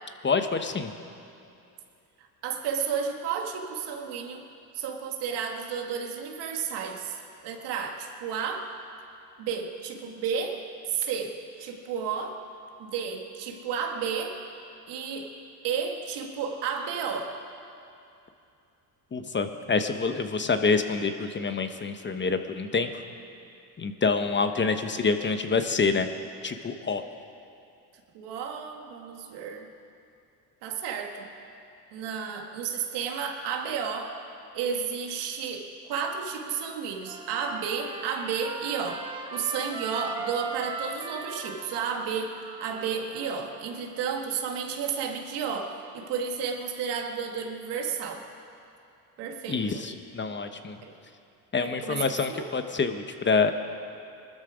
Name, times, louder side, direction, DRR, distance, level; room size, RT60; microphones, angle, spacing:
voice 1, 0.2-0.9 19.1-23.0 23.8-26.1 26.4-27.0 49.5-50.8 51.5-53.5, left 4 dB, 25° left, 8 dB, 1.0 m, -27 dB
voice 2, 2.4-4.4 4.7-7.2 7.4-8.7 9.4-12.4 12.8-14.4 14.9-15.3 15.6-17.4 28.1-29.7 30.6-31.3 31.9-34.1 34.5-39.0 39.3-48.3 49.2-49.9 50.8-50.9 51.6-52.5, right 6 dB, 80° right, 3 dB, 1.9 m, -32 dB
Trumpet, 37.1-43.7, right 3 dB, 10° right, 1.4 m, -39 dB
20.5 x 13.0 x 5.0 m, 2.6 s
cardioid pair, 90°, 41 cm